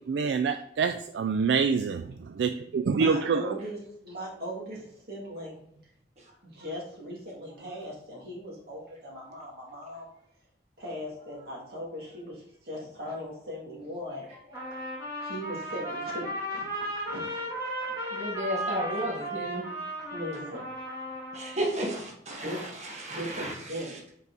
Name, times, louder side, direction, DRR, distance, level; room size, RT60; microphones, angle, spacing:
voice 1, 0.0-3.5, right 5 dB, 75° right, 9 dB, 0.3 m, -26 dB
voice 2, 2.9-5.8 6.2-10.1 10.8-14.7 15.2-17.4 17.8-18.0 18.3-19.0 20.1-20.9 22.4-22.6 23.1-24.0, equal, 55° right, -3 dB, 2.2 m, -39 dB
Trumpet, 14.5-21.7, right 1 dB, 20° right, 2.3 m, -35 dB
voice 3, 18.1-19.7 21.3-23.5, right 1 dB, 40° right, -2 dB, 1.4 m, -33 dB
5.4 x 4.7 x 3.9 m, 0.70 s
head